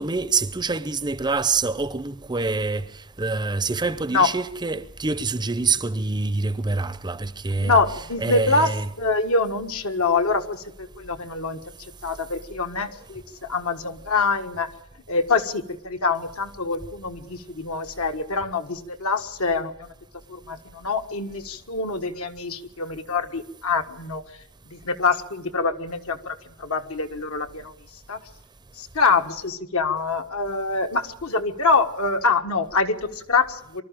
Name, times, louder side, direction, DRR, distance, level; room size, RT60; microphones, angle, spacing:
voice 1, 0.0-2.9 3.2-7.8 8.2-8.9, right 3 dB, 20° right, 0.7 m, -25 dB
voice 2, 7.6-11.6 12.0-14.7 15.1-19.9 20.3-24.2 24.7-27.7 28.1-28.2 28.8-33.8, left 4 dB, 70° left, 1.6 m, -25 dB
24.0 x 12.5 x 8.9 m
head